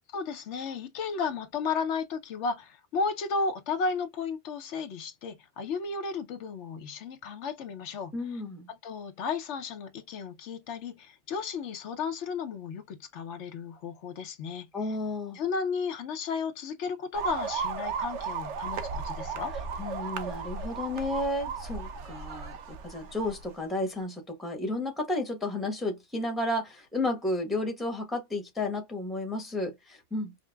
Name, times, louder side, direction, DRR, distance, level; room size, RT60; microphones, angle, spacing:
voice 1, 0.1-8.1 8.7-14.7 15.3-19.5, left 5 dB, 75° left, 1.0 m, -34 dB
voice 2, 8.1-8.7 14.7-15.4 19.8-30.4, left 2 dB, ahead, 0.9 m, -32 dB
sound 1, 17.1-23.5, right 5 dB, 80° right, 1.0 m, -35 dB
5.0 x 2.0 x 2.2 m
omnidirectional pair, 1.2 m